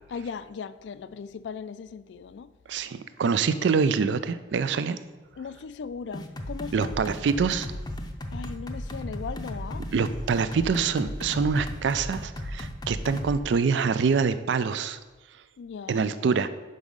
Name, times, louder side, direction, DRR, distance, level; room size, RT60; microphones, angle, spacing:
voice 1, 0.1-2.5 5.4-6.9 8.3-9.9 15.6-16.1, left 5 dB, 75° left, 0.4 m, -38 dB
voice 2, 2.7-5.0 6.7-7.7 9.9-15.0 15.9-16.5, right 5 dB, 75° right, 0.4 m, -25 dB
sound 1, 6.1-13.4, left 1 dB, 20° left, 0.5 m, -35 dB
5.4 x 5.0 x 6.3 m
head